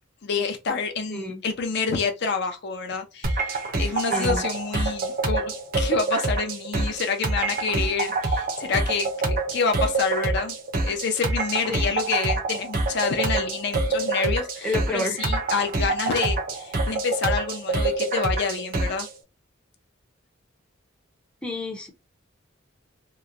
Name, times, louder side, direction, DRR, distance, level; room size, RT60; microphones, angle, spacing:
voice 1, 0.2-10.6 10.8-19.1, left 5 dB, 55° left, 0.5 m, -28 dB
voice 2, 1.1-1.4 4.1-4.4 11.7-12.0 14.6-15.2 21.4-21.9, left 1 dB, 5° left, 0.5 m, -29 dB
sound 1, 3.2-19.1, right 2 dB, 45° right, 0.5 m, -26 dB
2.9 x 2.1 x 2.4 m
head